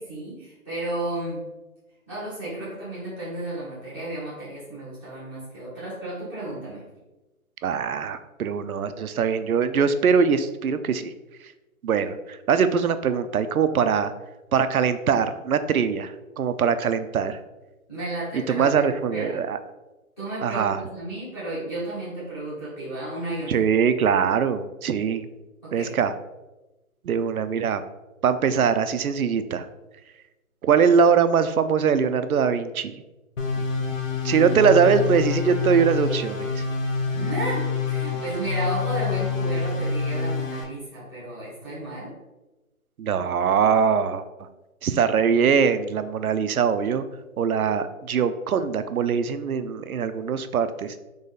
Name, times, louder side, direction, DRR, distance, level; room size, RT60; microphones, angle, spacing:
voice 1, 0.0-1.4 2.1-6.8 17.9-19.4 20.2-23.6 25.6-25.9 37.1-42.1, right 1 dB, 10° left, -11 dB, 0.7 m, -33 dB
voice 2, 7.6-11.1 11.8-14.1 14.5-17.4 18.5-19.6 20.4-20.8 23.5-25.3 25.7-26.1 27.0-27.8 28.2-29.7 30.6-33.0 34.2-36.6 43.0-44.2 44.8-47.0 47.4-51.0, right 6 dB, 75° right, 11 dB, 0.6 m, -22 dB
sound 1, 33.4-40.6, left 4 dB, 65° left, 1.0 m, -27 dB
4.1 x 3.0 x 3.9 m, 1.1 s
figure-of-eight pair, 155°, 43 cm